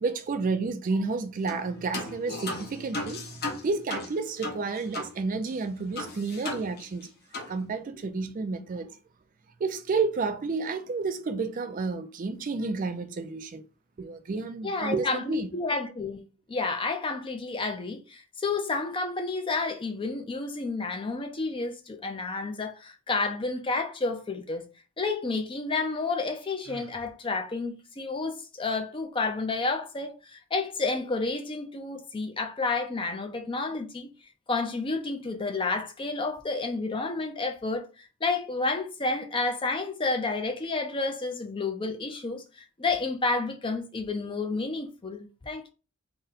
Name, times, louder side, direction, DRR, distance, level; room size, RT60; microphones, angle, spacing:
voice 1, 0.0-7.1 7.5-9.0 9.6-13.6 14.0-15.5, right 4 dB, 40° right, 0.4 m, -31 dB
sound 1, 1.5-1.7 1.9-5.1 5.4-5.5 6.0-7.1 7.3-7.5, left 2 dB, 45° left, 0.8 m, -36 dB
voice 2, 14.6-16.2 16.5-24.6 25.0-34.1 34.5-45.7, left 3 dB, 25° left, 0.5 m, -30 dB
Sigh, 26.6-27.2, right 2 dB, 80° right, 0.6 m, -48 dB
3.9 x 2.2 x 3.9 m
head